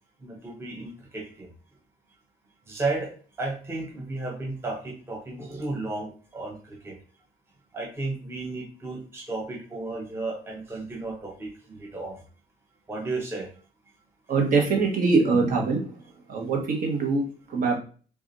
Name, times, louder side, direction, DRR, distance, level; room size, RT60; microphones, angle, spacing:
voice 1, 0.2-1.5 2.7-7.0 7.7-12.2 12.9-13.5, right 2 dB, 15° right, -1 dB, 0.9 m, -34 dB
voice 2, 14.3-16.0 16.3-17.8, right 4 dB, 55° right, 0 dB, 1.3 m, -23 dB
4.7 x 2.4 x 2.6 m, 0.40 s
cardioid pair, 110°, 17 cm